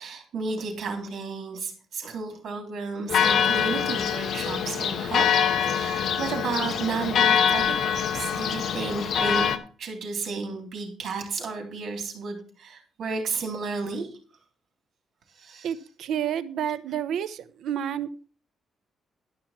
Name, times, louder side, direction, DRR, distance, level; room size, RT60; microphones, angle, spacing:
voice 1, 0.0-14.1 15.4-15.7, right 4 dB, 55° right, 3 dB, 3.5 m, -33 dB
Church bell, 3.1-9.6, left 8 dB, 55° left, 0.9 m, -24 dB
voice 2, 15.6-18.2, right 9 dB, 70° right, 15 dB, 0.7 m, -30 dB
12.0 x 5.8 x 5.9 m, 0.39 s
cardioid pair, 165°, 0 cm